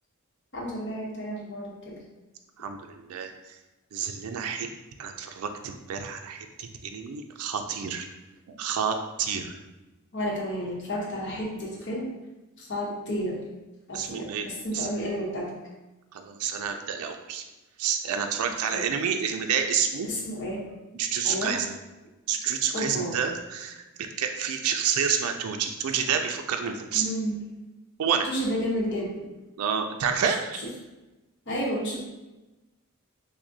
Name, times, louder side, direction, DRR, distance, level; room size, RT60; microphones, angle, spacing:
voice 1, 0.5-2.0 10.1-12.1 12.6-13.4 13.9-15.5 18.4-18.9 20.0-20.7 21.2-21.6 22.7-23.2 26.9-27.4 28.2-29.2 31.5-32.0, equal, 55° left, -2 dB, 0.9 m, -31 dB
voice 2, 2.6-3.3 3.9-4.7 5.0-8.1 8.5-9.5 13.9-14.5 14.7-14.9 16.1-17.4 17.8-20.1 20.9-21.7 22.3-27.0 28.0-28.3 29.6-30.6, right 7 dB, 80° right, 5 dB, 0.4 m, -29 dB
5.9 x 2.1 x 2.6 m, 1.1 s
head